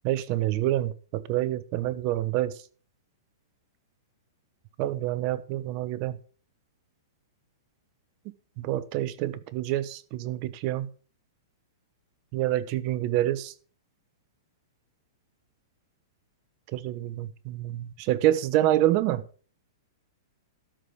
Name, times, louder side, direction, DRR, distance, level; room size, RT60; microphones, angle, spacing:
voice 1, 0.0-2.5 4.8-6.2 8.6-10.9 12.3-13.5 16.7-19.2, right 14 dB, 45° right, 1.0 m, -27 dB
12.5 x 5.1 x 7.1 m
hypercardioid pair, 125°, 2 cm